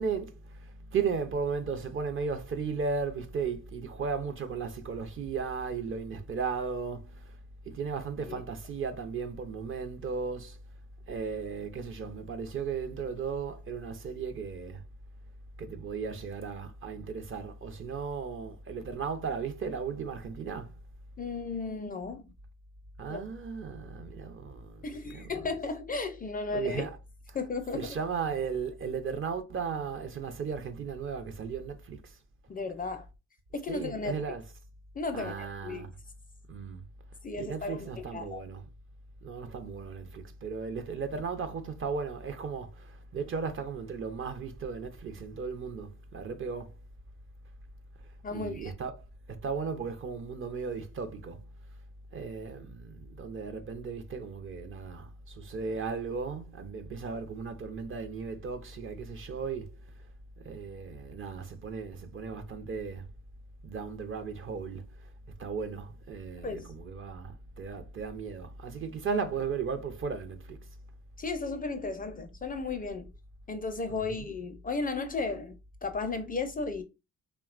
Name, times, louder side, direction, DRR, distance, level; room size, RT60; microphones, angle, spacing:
voice 1, 0.0-7.4 7.7-10.6 11.1-14.8 15.6-20.7 23.0-25.5 26.5-27.0 27.3-27.4 27.7-32.2 33.7-34.4 35.1-35.9 36.5-36.8 37.3-38.6 39.2-46.7 48.3-51.4 52.1-59.7 60.4-63.1 63.6-64.8 65.4-70.6 73.9-74.3, right 5 dB, 40° right, 0.5 m, -36 dB
voice 2, 21.2-22.2 23.1-23.2 24.8-26.9 27.3-28.0 32.5-33.1 33.5-34.2 35.0-35.9 37.2-38.4 48.2-48.7 66.4-66.7 71.2-73.1 73.5-75.6 75.8-76.8, left 4 dB, 30° left, 0.4 m, -34 dB
2.8 x 2.1 x 2.4 m
supercardioid pair, 65°, 31 cm